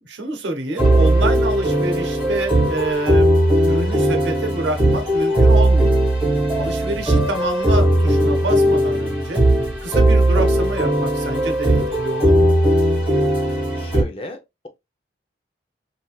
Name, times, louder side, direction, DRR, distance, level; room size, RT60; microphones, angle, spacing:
voice 1, 0.0-6.0 6.5-9.5 9.8-12.6, right 1 dB, 75° right, 0.8 m, -27 dB
sound 1, 0.8-14.0, right 1 dB, 10° right, 1.5 m, -17 dB
voice 2, 13.7-14.7, left 2 dB, 30° left, 0.5 m, -34 dB
3.6 x 2.6 x 2.3 m
head